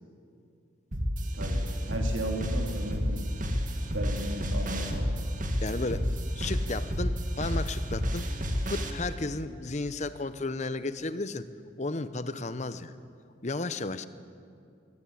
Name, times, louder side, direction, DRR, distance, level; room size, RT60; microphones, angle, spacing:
sound 1, 0.9-8.9, equal, 40° right, 2.1 m, -30 dB
voice 1, 1.3-3.3 3.9-5.2, right 1 dB, 85° right, 1 dB, 2.8 m, -36 dB
voice 2, 5.6-6.1 6.3-8.3 8.7-11.4 11.8-13.0 13.4-14.1, left 2 dB, 35° left, 13 dB, 0.8 m, -33 dB
23.0 x 17.0 x 8.6 m, 2.4 s
head